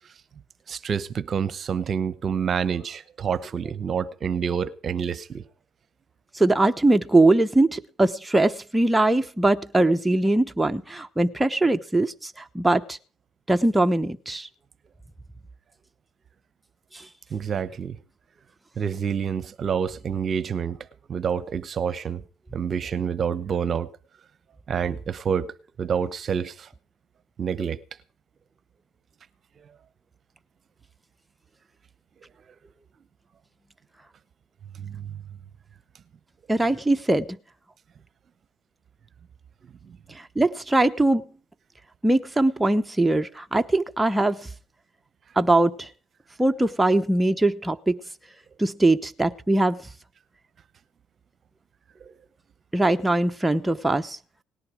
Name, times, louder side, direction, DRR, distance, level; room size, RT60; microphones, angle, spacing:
voice 1, 0.7-5.4 17.3-18.0 18.8-20.8 21.1-22.2 22.5-23.9 24.7-26.7 27.4-27.8 34.8-35.2 39.9-40.0 52.0-52.1, right 7 dB, 50° right, 0.9 m, -28 dB
voice 2, 6.3-13.0 13.5-14.5 16.9-17.1 36.5-37.3 40.1-41.2 42.0-44.5 45.4-45.9 46.4-48.0 48.6-49.9 52.7-54.2, right 2 dB, 10° right, 0.9 m, -21 dB
18.5 x 10.5 x 5.0 m
supercardioid pair, 75°, 0 cm